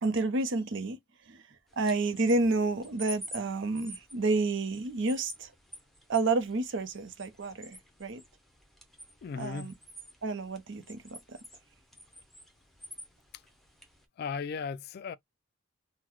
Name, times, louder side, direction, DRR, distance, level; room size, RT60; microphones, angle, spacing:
voice 1, 0.0-1.0 1.3-1.4 1.8-5.5 6.1-8.2 9.4-9.7 10.2-11.4, right 3 dB, 65° right, 0.7 m, -30 dB
sound 1, 1.7-14.1, equal, ahead, 0.7 m, -50 dB
voice 2, 9.2-9.7 13.3-13.4 14.2-15.2, left 5 dB, 50° left, 0.3 m, -36 dB
3.8 x 2.2 x 3.0 m
head